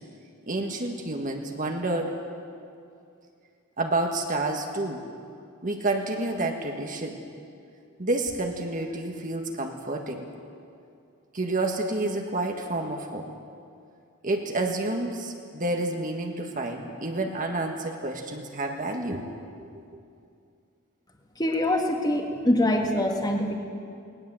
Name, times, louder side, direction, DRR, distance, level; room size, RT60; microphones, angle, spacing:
voice 1, 0.5-2.1 3.8-5.0 5.6-7.2 8.0-10.3 11.3-13.3 14.2-19.7, right 2 dB, 40° right, 3 dB, 1.6 m, -29 dB
voice 2, 21.4-23.6, left 1 dB, 20° left, 2 dB, 2.0 m, -24 dB
19.5 x 19.0 x 7.7 m, 2.4 s
head